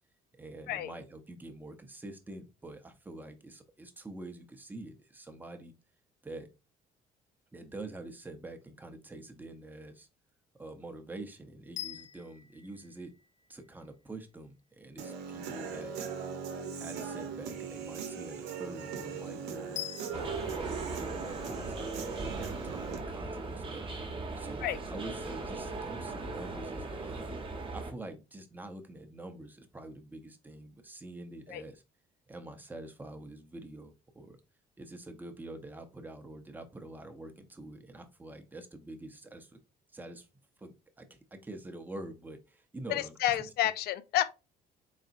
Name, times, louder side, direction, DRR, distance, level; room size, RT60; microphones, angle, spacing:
voice 1, 0.4-5.7 6.2-6.5 7.5-10.1 10.6-13.1 13.5-15.9 16.7-24.1 24.4-27.3 27.7-31.8 32.3-34.4 34.8-39.6 39.9-40.3 40.6-43.5, right 2 dB, 10° right, 0.7 m, -46 dB
sound 1, 11.8-13.9 19.8-20.5, left 14 dB, 45° left, 0.8 m, -44 dB
Human voice / Guitar, 15.0-23.0, right 6 dB, 85° right, 0.8 m, -40 dB
sound 2, 20.1-27.9, right 3 dB, 30° right, 1.0 m, -38 dB
voice 2, 42.9-44.3, left 13 dB, 70° left, 0.4 m, -30 dB
4.0 x 3.5 x 2.5 m
cardioid pair, 110°, 17 cm